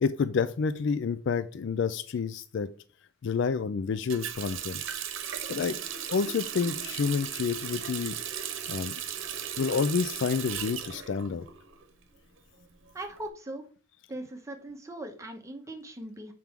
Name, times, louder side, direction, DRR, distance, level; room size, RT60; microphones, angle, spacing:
voice 1, 0.0-2.7 3.2-4.8 5.5-5.8 6.1-8.2 8.7-8.9 9.6-11.4, left 5 dB, 60° left, 13 dB, 0.3 m, -29 dB
Water tap faucet, 4.1-11.8 12.2-13.2, right 8 dB, 70° right, 0.9 m, -36 dB
voice 2, 12.9-13.6 14.1-16.3, right 1 dB, 15° right, 3 dB, 0.7 m, -40 dB
7.4 x 4.6 x 3.6 m, 0.40 s
head